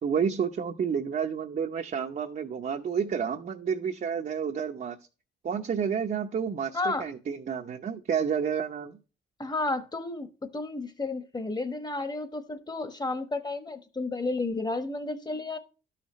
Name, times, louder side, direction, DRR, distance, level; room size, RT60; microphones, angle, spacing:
voice 1, 0.0-5.0 5.4-9.0, right 7 dB, 45° right, 0.8 m, -30 dB
voice 2, 6.7-7.0 9.4-10.3 10.5-15.6, left 3 dB, 20° left, 1.3 m, -32 dB
12.5 x 5.8 x 3.1 m
cardioid pair, 90°, 20 cm